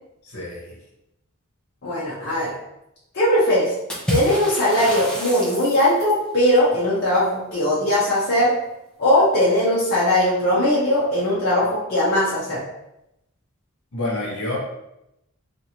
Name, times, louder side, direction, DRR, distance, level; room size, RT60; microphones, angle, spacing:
voice 1, 0.2-0.8 13.9-14.6, left 2 dB, 75° left, -4 dB, 1.0 m, -28 dB
voice 2, 1.8-2.5 3.1-3.7 4.1-8.5 9.0-12.6, left 1 dB, 45° left, -8 dB, 0.7 m, -19 dB
Water / Splash splatter, 3.9-6.3, equal, 5° left, 0.5 m, -28 dB
2.9 x 2.5 x 2.8 m, 0.86 s
head